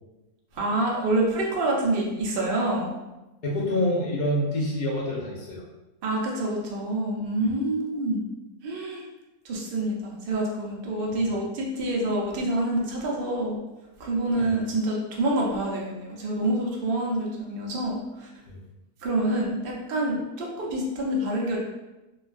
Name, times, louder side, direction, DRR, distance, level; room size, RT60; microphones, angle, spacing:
voice 1, 0.5-2.9 6.0-8.3 8.6-9.0 9.4-13.6 14.0-18.3 19.0-21.6, right 1 dB, 60° right, -3 dB, 0.5 m, -27 dB
voice 2, 3.4-5.6 7.4-7.5 11.1-11.2 14.4-14.5 18.5-18.6, left 1 dB, 80° left, -5 dB, 0.4 m, -27 dB
3.2 x 2.3 x 2.4 m, 1.0 s
omnidirectional pair, 1.6 m